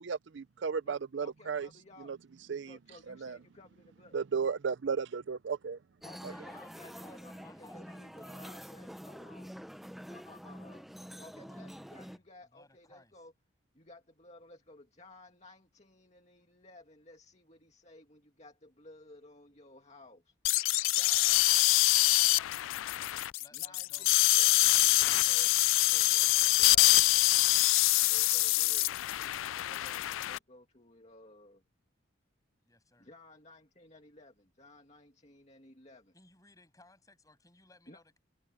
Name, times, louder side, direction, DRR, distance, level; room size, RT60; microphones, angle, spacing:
voice 1, 0.0-1.7 2.0-2.2 2.5-2.8 3.1-3.4 4.1-5.8 6.2-6.3, right 5 dB, 65° right, 0.5 m, -34 dB
voice 2, 0.8-2.1 2.7-4.1 6.0-9.5 10.1-10.9 11.2-13.3 13.7-20.3 20.9-22.8 23.5-25.5 25.7-27.1 28.0-29.0 29.5-31.6 33.0-36.1 37.9-38.0, left 2 dB, 35° left, 2.3 m, -56 dB
sound 1, 6.0-12.2, equal, ahead, 0.8 m, -47 dB
voice 3, 6.2-8.7 11.8-13.3 23.4-25.6 32.6-33.1 36.1-38.2, left 2 dB, 15° left, 7.5 m, -61 dB
sound 2, 20.4-30.4, left 19 dB, 80° left, 0.3 m, -25 dB
head